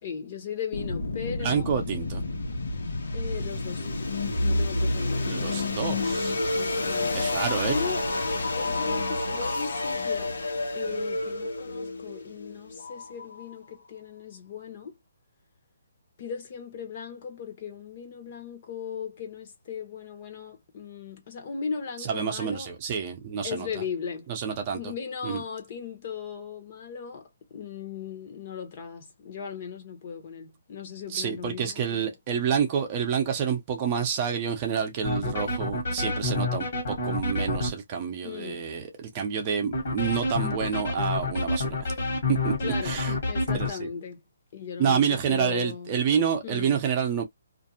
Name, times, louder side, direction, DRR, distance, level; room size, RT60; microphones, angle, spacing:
voice 1, 0.0-1.7 3.1-3.9 4.4-5.7 6.5-7.3 7.6-8.1 8.6-10.3 10.7-14.9 16.2-22.7 23.4-24.3 24.7-32.1 38.2-38.6 42.6-43.0 43.3-44.2 44.5-46.0 46.4-46.8, left 6 dB, 40° left, 0.9 m, -37 dB
sound 1, 0.7-13.5, left 2 dB, 85° left, 1.1 m, -29 dB
voice 2, 1.4-2.2 5.3-6.4 7.1-7.7 22.0-23.7 24.3-24.8 25.2-25.4 31.1-41.8 42.3-42.5 42.8-43.2 43.5-43.9 44.8-47.2, right 7 dB, 30° right, 0.7 m, -28 dB
sound 2, 35.0-37.7 39.7-43.7, left 2 dB, 55° left, 1.4 m, -28 dB
2.5 x 2.3 x 2.7 m
hypercardioid pair, 165°, 0 cm